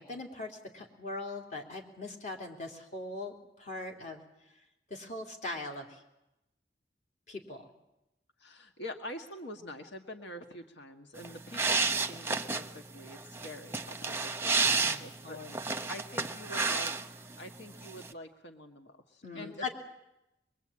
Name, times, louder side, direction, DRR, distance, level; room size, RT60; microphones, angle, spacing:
voice 1, 0.0-4.2 4.9-6.0 7.3-7.7 14.7-15.6 19.2-19.7, left 2 dB, 40° left, 2 dB, 3.3 m, -41 dB
voice 2, 8.4-17.1 17.4-19.7, left 1 dB, 85° left, 5 dB, 1.5 m, -46 dB
sound 1, 11.2-17.4 17.6-18.1, right 4 dB, 15° right, 0.8 m, -31 dB
24.0 x 22.5 x 8.7 m, 0.92 s
head